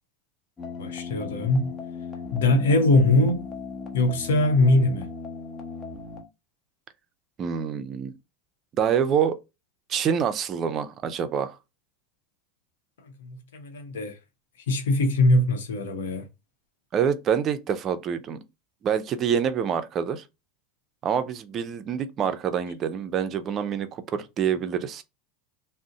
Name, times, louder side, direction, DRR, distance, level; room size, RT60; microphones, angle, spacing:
sound 1, 0.6-6.2, left 4 dB, 25° left, 0.9 m, -37 dB
voice 1, 0.8-1.7 2.3-3.4 3.9-5.1 13.2-14.2 14.7-16.2, left 2 dB, 75° left, 0.7 m, -22 dB
voice 2, 7.4-8.1 8.8-9.4 9.9-11.6 16.9-18.4 18.8-20.2 21.0-25.0, right 8 dB, 40° right, 0.5 m, -26 dB
2.5 x 2.0 x 3.7 m
hypercardioid pair, 85°, 0 cm